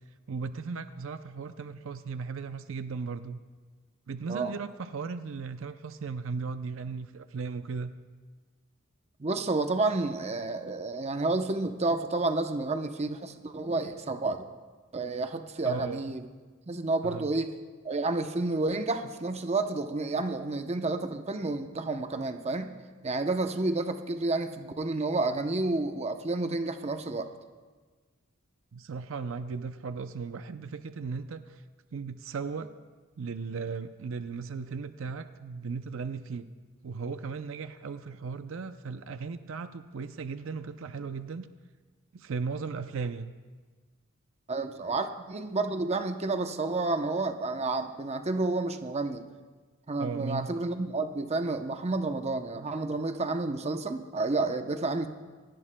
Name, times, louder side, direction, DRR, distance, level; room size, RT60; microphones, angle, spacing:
voice 1, 0.3-3.4 4.1-7.9 15.6-16.0 17.0-17.3 28.7-31.6 31.9-32.7 33.2-36.5 36.8-41.5 42.1-43.3 50.0-50.5, right 5 dB, 65° right, 10 dB, 0.5 m, -36 dB
voice 2, 9.2-14.5 14.9-16.3 16.7-17.5 17.8-22.8 23.0-27.3 44.5-49.2 49.9-55.1, right 3 dB, 30° right, 7 dB, 0.7 m, -30 dB
27.0 x 18.5 x 2.2 m, 1.4 s
head